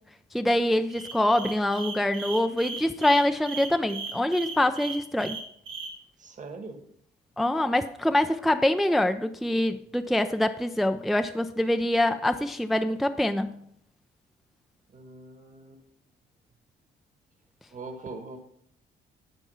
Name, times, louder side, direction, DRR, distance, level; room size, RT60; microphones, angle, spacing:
voice 1, 0.3-5.4 7.4-13.5, left 1 dB, ahead, 0.4 m, -25 dB
sound 1, 0.9-5.9, right 5 dB, 90° right, 2.5 m, -37 dB
voice 2, 6.2-6.8 14.9-15.8 17.7-18.4, right 3 dB, 40° right, 1.5 m, -41 dB
11.0 x 4.5 x 5.6 m
cardioid pair, 90°, 20 cm